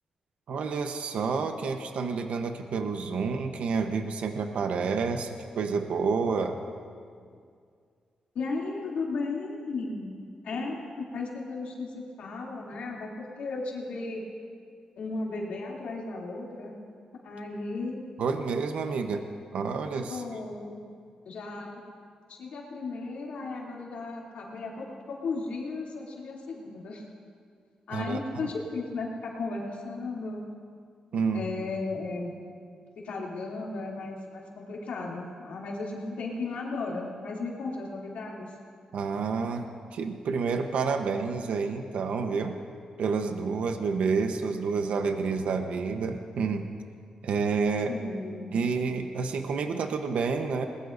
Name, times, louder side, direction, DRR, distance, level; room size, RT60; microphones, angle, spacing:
voice 1, 0.5-6.6 18.2-19.2 19.5-20.2 27.9-28.5 31.1-31.5 38.9-42.6 43.0-46.7 47.2-47.9 48.5-50.6, right 5 dB, 80° right, 5 dB, 0.9 m, -29 dB
voice 2, 8.3-14.2 15.0-16.8 17.2-18.0 20.1-20.8 21.2-21.8 22.3-27.0 27.9-30.5 31.3-32.3 33.0-38.5 47.9-48.5, left 3 dB, 85° left, -3 dB, 2.8 m, -35 dB
20.5 x 20.0 x 2.6 m, 2.2 s
wide cardioid pair, 120°, 2 cm